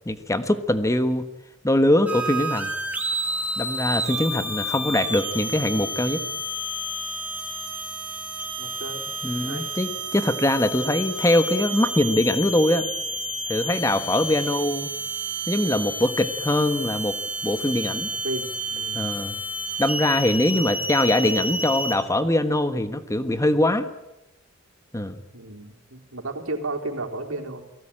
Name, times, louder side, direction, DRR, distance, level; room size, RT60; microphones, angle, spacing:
voice 1, 0.0-1.2 1.6-2.7 3.6-6.2 9.2-12.9 13.5-14.9 15.5-17.1 17.4-18.1 18.9-19.4 19.8-23.9 24.9-25.2, left 1 dB, 15° left, 10 dB, 1.3 m, -22 dB
sound 1, 2.1-22.0, right 1 dB, 10° right, 3.8 m, -30 dB
voice 2, 8.6-9.1 9.4-9.7 18.2-19.1 20.5-20.7 25.3-27.6, right 2 dB, 80° right, 4 dB, 4.1 m, -33 dB
29.5 x 19.0 x 8.9 m, 0.91 s
head